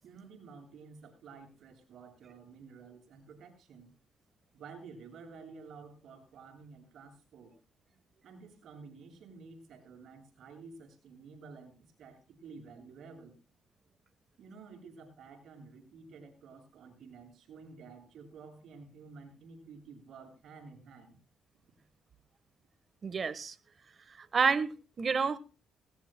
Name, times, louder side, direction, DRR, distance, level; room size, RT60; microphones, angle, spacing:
voice 1, 0.0-3.9 4.5-7.6 8.2-13.4 14.4-21.2, right 4 dB, 70° right, 7.1 m, -51 dB
voice 2, 23.0-23.5 24.1-25.4, right 5 dB, 40° right, 1.3 m, -30 dB
20.5 x 20.0 x 2.3 m
cardioid pair, 90°, 0 cm